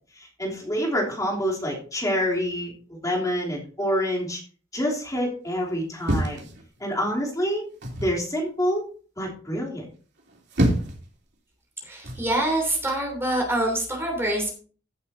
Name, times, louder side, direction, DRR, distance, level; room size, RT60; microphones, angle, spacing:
voice 1, 0.2-4.4 4.7-6.4 6.8-7.6 8.0-8.8 9.2-9.9, equal, 20° left, -3 dB, 3.3 m, -27 dB
sound 1, 6.0-7.1 7.8-8.2 10.2-11.1 12.0-12.3, right 1 dB, 60° right, 3.3 m, -26 dB
voice 2, 11.8-14.5, right 1 dB, 15° right, 0 dB, 3.1 m, -25 dB
16.0 x 8.0 x 2.8 m, 0.40 s
head